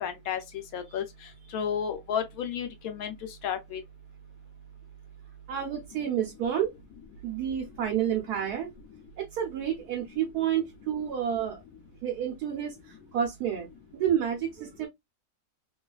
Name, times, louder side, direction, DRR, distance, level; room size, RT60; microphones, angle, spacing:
voice 1, 0.0-0.4 0.7-1.0 1.5-3.1 3.4-3.8, left 8 dB, 75° left, 1.0 m, -31 dB
voice 2, 5.5-6.7 7.2-8.7 9.2-11.6 12.0-13.7 13.9-14.9, right 9 dB, 85° right, 1.3 m, -30 dB
3.1 x 2.4 x 2.2 m
omnidirectional pair, 1.6 m